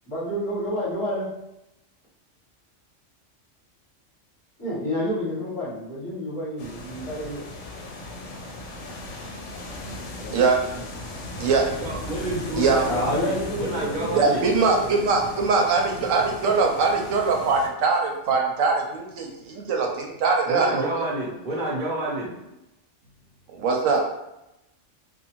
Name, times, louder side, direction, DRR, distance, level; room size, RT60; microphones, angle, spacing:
voice 1, 0.1-1.3 4.6-7.4 10.1-10.4 10.7-10.8 12.9-14.8, equal, 25° left, -10 dB, 1.0 m, -29 dB
sound 1, 6.6-17.7, left 1 dB, 75° left, 0.9 m, -37 dB
voice 2, 11.6-14.4 20.4-22.3, right 1 dB, 45° right, -6 dB, 0.8 m, -29 dB
voice 3, 14.1-21.1 23.5-24.0, right 4 dB, 80° right, 1 dB, 0.9 m, -22 dB
2.6 x 2.3 x 2.9 m, 0.91 s
omnidirectional pair, 1.3 m